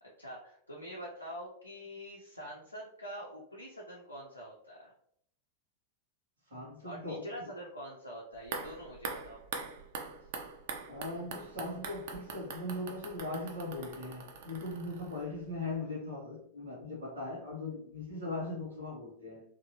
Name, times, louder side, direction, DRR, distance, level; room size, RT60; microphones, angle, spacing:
voice 1, 0.0-4.9 6.8-9.4, equal, 85° left, -4 dB, 0.5 m, -45 dB
voice 2, 6.5-7.3 10.9-19.4, left 2 dB, 70° right, -5 dB, 0.9 m, -39 dB
sound 1, 8.4-15.5 15.8-15.9, right 5 dB, 50° right, 0.3 m, -43 dB
2.7 x 2.1 x 2.8 m, 0.67 s
figure-of-eight pair, 90°, 0 cm